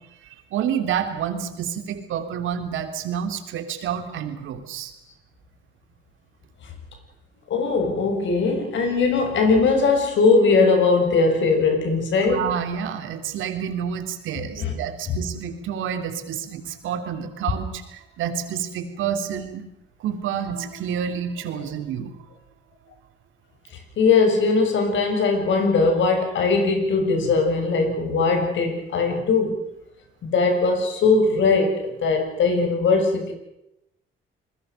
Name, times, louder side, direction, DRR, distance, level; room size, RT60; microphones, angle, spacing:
voice 1, 0.2-4.9 12.3-19.6 20.0-22.1, right 8 dB, 85° right, 3.5 m, -29 dB
voice 2, 7.5-12.5 14.6-14.7 15.1-15.2 24.0-29.6 30.2-33.3, left 4 dB, 70° left, 6.8 m, -20 dB
28.5 x 21.0 x 6.7 m
cardioid pair, 90°, 20 cm